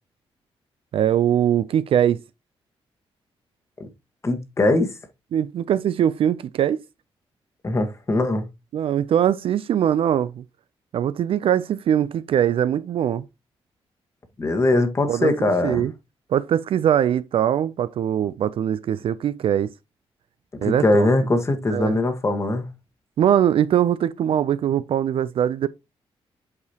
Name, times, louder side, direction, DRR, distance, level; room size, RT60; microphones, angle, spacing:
voice 1, 0.9-2.2 5.3-6.8 8.7-10.4 10.9-13.3 15.1-15.3 15.6-15.9 16.3-19.7 20.6-21.1 21.7-22.0 23.2-25.7, right 10 dB, 65° right, 0.4 m, -21 dB
voice 2, 4.2-4.9 7.6-8.5 14.4-15.9 20.6-22.7, left 2 dB, 30° left, 1.4 m, -21 dB
8.3 x 4.8 x 2.8 m
cardioid pair, 125°, 10 cm